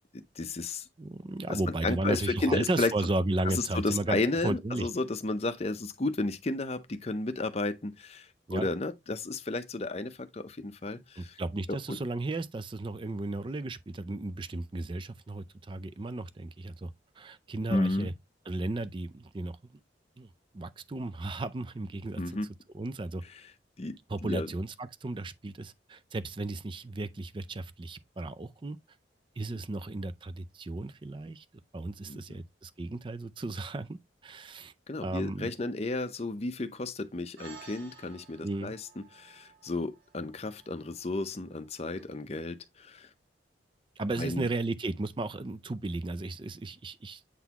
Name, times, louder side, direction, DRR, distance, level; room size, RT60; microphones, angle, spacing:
voice 1, 0.1-0.9 1.5-2.9 3.4-11.4 11.7-12.0 17.7-18.1 22.2-22.5 23.3-23.5 23.8-24.5 29.5-29.6 32.1-32.4 34.9-43.1 44.2-44.5, left 2 dB, 35° left, 0.6 m, -33 dB
voice 2, 1.0-4.9 8.5-8.7 11.2-16.9 17.2-18.1 18.5-19.6 20.2-20.3 20.5-22.2 22.7-23.2 24.1-28.8 29.4-31.4 31.7-34.7 35.0-35.5 38.4-38.7 44.0-47.2, right 2 dB, 25° right, 0.4 m, -34 dB
sound 1, 37.4-42.0, right 5 dB, 85° right, 2.4 m, -54 dB
8.2 x 3.9 x 2.9 m
head